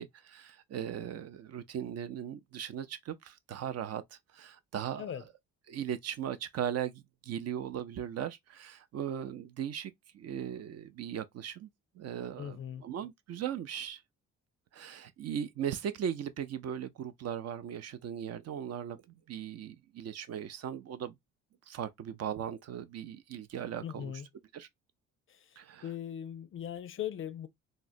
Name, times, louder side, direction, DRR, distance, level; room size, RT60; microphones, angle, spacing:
voice 1, 0.0-5.2 5.7-11.7 12.0-14.0 14.7-19.0 19.3-21.1 21.7-24.1 24.5-24.7 25.6-25.9, right 9 dB, 55° right, 0.5 m, -38 dB
voice 2, 12.4-12.8 23.8-24.3 25.3-25.5 25.8-27.5, left 10 dB, 45° left, 0.4 m, -39 dB
3.6 x 2.1 x 2.5 m
cardioid pair, 90°, 30 cm